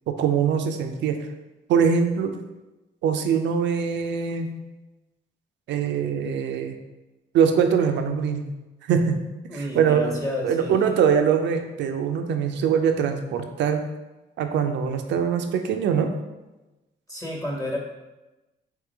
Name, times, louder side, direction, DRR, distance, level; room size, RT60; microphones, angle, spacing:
voice 1, 0.1-1.2 1.7-2.3 3.0-4.5 5.7-6.8 7.3-8.4 8.8-9.2 9.5-10.1 10.4-13.8 14.4-16.1, right 7 dB, 80° right, 6 dB, 0.5 m, -22 dB
voice 2, 9.5-11.0 17.1-17.8, left 1 dB, 20° left, -2 dB, 1.3 m, -31 dB
3.7 x 3.1 x 4.6 m, 1.1 s
cardioid pair, 80°, 19 cm